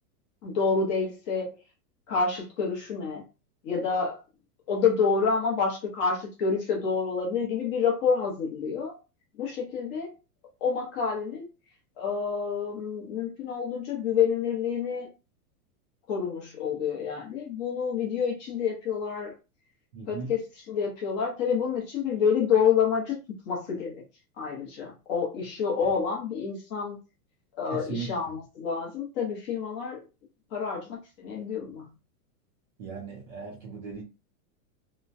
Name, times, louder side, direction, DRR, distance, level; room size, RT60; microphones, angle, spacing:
voice 1, 0.4-1.6 2.1-3.2 3.6-4.2 4.7-8.9 9.4-10.1 10.6-11.5 12.0-15.1 16.1-19.3 20.1-23.2 23.5-24.0 24.4-27.0 27.6-30.0 30.5-31.9, left 6 dB, 30° left, 0.8 m, -28 dB
voice 2, 19.9-20.4 25.8-25.9 27.7-28.3 32.8-34.0, right 5 dB, 30° right, 0.5 m, -38 dB
3.0 x 2.1 x 2.6 m
supercardioid pair, 165°, 47 cm